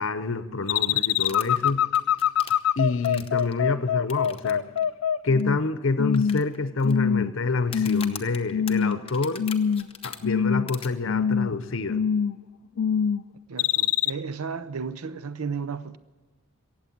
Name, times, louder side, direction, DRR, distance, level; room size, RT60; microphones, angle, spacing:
voice 1, 0.0-1.8 2.8-4.6 5.2-9.4 10.0-12.0, left 3 dB, 60° left, 0.7 m, -27 dB
sound 1, 0.7-5.7 6.0-6.5 6.8-7.4 7.7-8.1 8.5-9.1 9.4-9.9 10.2-10.7 11.1-11.5 11.9-12.4 12.8-13.2 13.6-14.1, left 8 dB, 80° left, 0.4 m, -24 dB
sound 2, 1.2-3.5 4.1-4.5 4.8-4.9 5.4-5.5 6.1-6.9 7.6-10.2 10.7-10.9, left 7 dB, 25° left, 0.8 m, -40 dB
voice 2, 13.5-16.0, right 5 dB, 85° right, 0.6 m, -33 dB
17.5 x 7.6 x 9.3 m
head